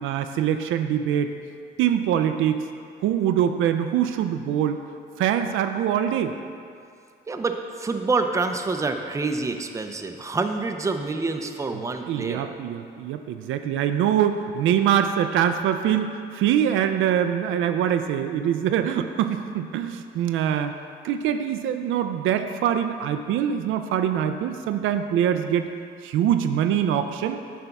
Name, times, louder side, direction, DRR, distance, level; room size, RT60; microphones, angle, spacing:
voice 1, 0.0-1.3 1.8-2.6 3.0-4.8 5.2-6.3 12.1-20.7 21.0-25.7 26.0-27.4, right 9 dB, 80° right, 8 dB, 0.4 m, -23 dB
voice 2, 7.3-12.6, right 3 dB, 15° right, 5 dB, 0.5 m, -27 dB
7.7 x 3.4 x 5.8 m, 2.4 s
cardioid pair, 90°, 20 cm